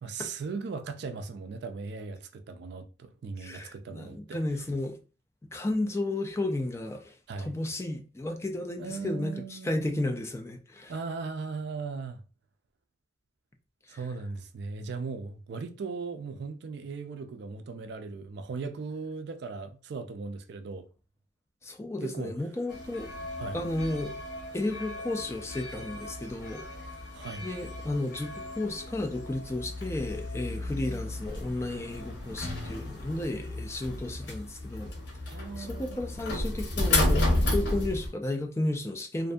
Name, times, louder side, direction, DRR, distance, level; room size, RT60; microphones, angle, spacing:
voice 1, 0.0-4.4 7.3-7.5 8.8-10.1 10.9-12.2 13.9-20.9 22.0-22.3 23.4-23.6 27.1-27.5 35.3-36.0, right 4 dB, 65° right, 0.4 m, -38 dB
voice 2, 3.4-5.0 5.5-10.9 13.9-14.0 21.6-23.1 23.5-24.1 24.5-26.7 27.4-34.9 35.6-37.3 37.5-39.3, left 2 dB, 15° left, 0.3 m, -33 dB
sound 1, 22.7-38.1, left 1 dB, 85° left, 0.8 m, -33 dB
2.6 x 2.5 x 2.2 m
head